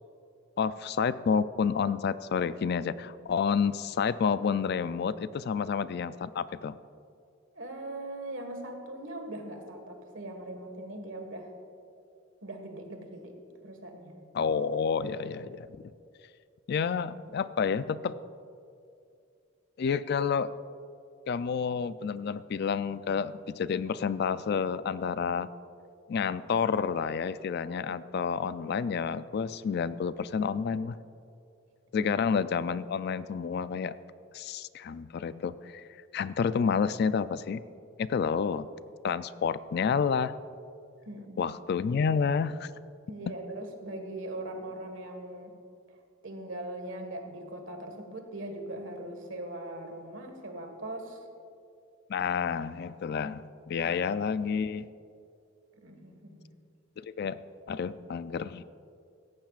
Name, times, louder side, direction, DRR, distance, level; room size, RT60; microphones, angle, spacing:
voice 1, 0.6-6.7 14.3-15.7 16.7-18.2 19.8-20.5 21.3-25.5 26.1-31.0 31.9-33.9 34.3-35.8 36.1-37.6 38.0-38.7 39.0-40.3 41.4-42.7 52.1-54.9 57.0-57.4 57.7-58.6, left 6 dB, 50° left, 14 dB, 0.3 m, -29 dB
voice 2, 7.5-11.5 12.4-13.4 13.6-14.2 31.9-32.1 41.0-41.5 43.1-45.5 46.2-51.2 53.8-53.9 55.8-56.5, right 1 dB, 65° right, 5 dB, 1.6 m, -40 dB
17.5 x 15.0 x 2.4 m, 2.5 s
head